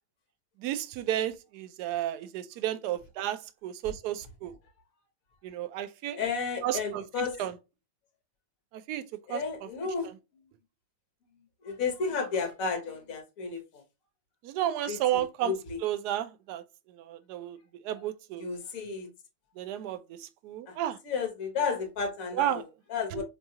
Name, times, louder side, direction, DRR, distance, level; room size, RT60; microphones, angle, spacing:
voice 1, 0.6-4.5 5.4-6.2 6.6-7.0 7.4-7.5 8.9-9.0 9.3-9.4 14.4-15.5 15.8-16.6 17.1-17.6 17.8-18.4 18.8-18.9 19.6-20.0 20.4-21.0 22.4-22.6 23.1-23.2, right 12 dB, 70° right, 1.0 m, -32 dB
voice 2, 6.1-7.4 9.3-10.1 11.6-13.8 14.9-15.8 17.9-18.0 18.3-19.1 20.7-20.8 21.0-23.2, left 5 dB, 55° left, 1.3 m, -33 dB
5.4 x 2.3 x 2.7 m
omnidirectional pair, 2.0 m